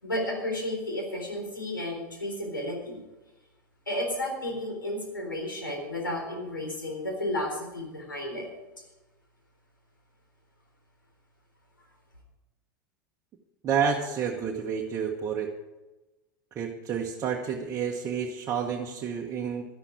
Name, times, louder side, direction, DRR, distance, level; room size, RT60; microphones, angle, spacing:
voice 1, 0.0-3.0 3.9-8.5, left 1 dB, 85° left, 0 dB, 3.8 m, -32 dB
voice 2, 13.6-15.5 16.5-19.7, right 7 dB, 30° right, 0 dB, 1.2 m, -29 dB
12.0 x 11.0 x 5.0 m, 1.1 s
figure-of-eight pair, 85°, 11 cm